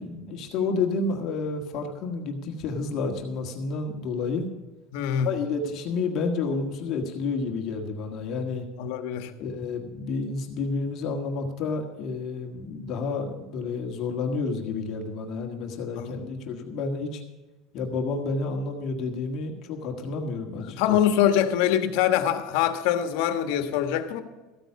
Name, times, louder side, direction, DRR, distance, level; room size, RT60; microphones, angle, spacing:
voice 1, 0.0-4.5 5.2-8.6 9.4-17.2 17.7-21.0, left 4 dB, 45° left, 3 dB, 1.6 m, -30 dB
voice 2, 4.9-5.3 8.8-9.3 16.0-16.1 20.8-24.2, left 10 dB, 70° left, 8 dB, 1.4 m, -24 dB
14.0 x 9.1 x 5.9 m, 1.2 s
cardioid pair, 155°, 0 cm